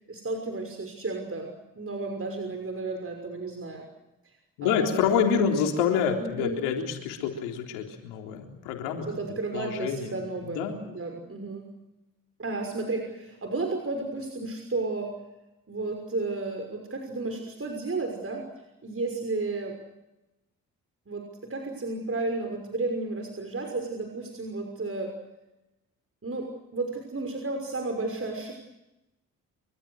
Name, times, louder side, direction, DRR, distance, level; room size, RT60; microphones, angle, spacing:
voice 1, 0.1-1.5 1.8-3.8 4.6-5.0 5.3-5.4 6.2-6.6 9.1-11.7 12.4-15.1 15.7-18.4 18.8-19.8 21.1-25.1 26.2-28.5, right 3 dB, 35° right, 3 dB, 6.1 m, -33 dB
voice 2, 4.6-9.1 9.5-10.8, left 7 dB, 85° left, 2 dB, 3.8 m, -27 dB
26.0 x 24.5 x 6.5 m, 0.96 s
hypercardioid pair, 45°, 39 cm